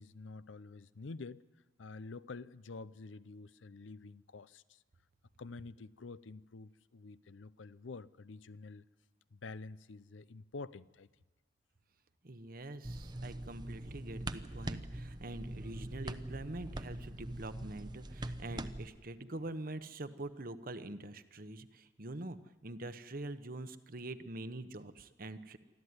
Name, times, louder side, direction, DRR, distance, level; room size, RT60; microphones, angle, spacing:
voice 1, 0.0-1.4 1.8-4.8 5.4-8.8 9.3-11.1, left 3 dB, 85° left, 0.6 m, -48 dB
voice 2, 12.2-22.4 22.6-25.6, right 2 dB, 50° right, 1.0 m, -44 dB
sound 1, 12.8-18.9, right 1 dB, 25° right, 0.8 m, -43 dB
24.5 x 14.5 x 9.7 m
head